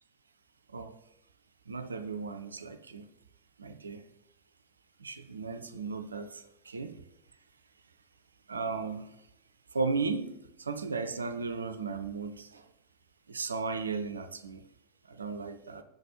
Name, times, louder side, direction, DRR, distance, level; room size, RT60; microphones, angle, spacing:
voice 1, 1.7-3.0 3.6-4.0 5.0-7.0 8.5-9.1 9.7-12.6 13.3-14.6 15.1-15.8, right 4 dB, 75° right, 10 dB, 0.4 m, -35 dB
6.3 x 4.1 x 4.8 m, 0.81 s
figure-of-eight pair, 90°, 0 cm